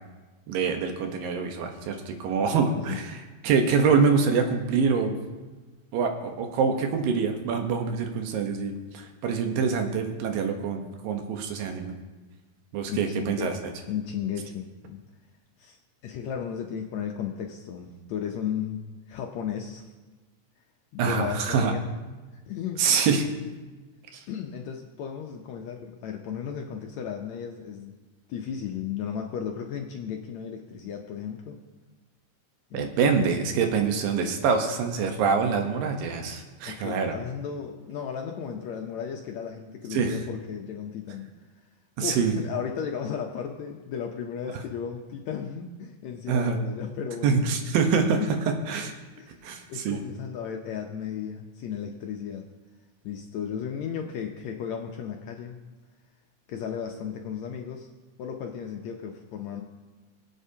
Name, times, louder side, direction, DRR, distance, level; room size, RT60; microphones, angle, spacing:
voice 1, 0.5-5.2 5.9-12.0 12.7-13.5 21.0-21.7 22.8-23.3 24.1-24.2 32.7-37.1 39.9-40.2 42.0-42.3 46.3-46.6 47.2-48.2 48.7-48.9 49.4-50.0, right 5 dB, 85° right, 4 dB, 2.8 m, -25 dB
voice 2, 12.9-13.6 13.9-15.0 15.6-19.8 20.9-21.8 22.3-22.9 24.3-27.9 28.3-31.6 32.7-32.9 35.6-35.7 36.6-41.3 42.0-47.5 48.2-48.3 49.2-49.4 49.7-52.5 53.0-55.6 56.5-57.9 58.2-59.6, left 8 dB, 75° left, 2 dB, 1.7 m, -35 dB
22.0 x 8.2 x 2.8 m, 1.2 s
omnidirectional pair, 3.9 m